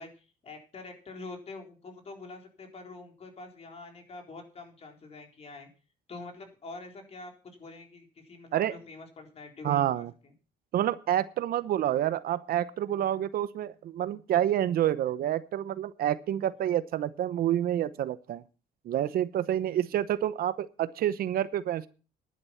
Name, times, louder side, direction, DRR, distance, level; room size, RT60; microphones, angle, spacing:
voice 1, 0.0-5.7 6.1-10.3 19.7-19.9, left 3 dB, 40° left, 3 dB, 4.0 m, -46 dB
voice 2, 9.6-10.1 10.7-18.4 18.8-21.9, right 11 dB, 60° right, 14 dB, 0.9 m, -28 dB
11.5 x 10.5 x 5.7 m, 0.35 s
cardioid pair, 110°, 17 cm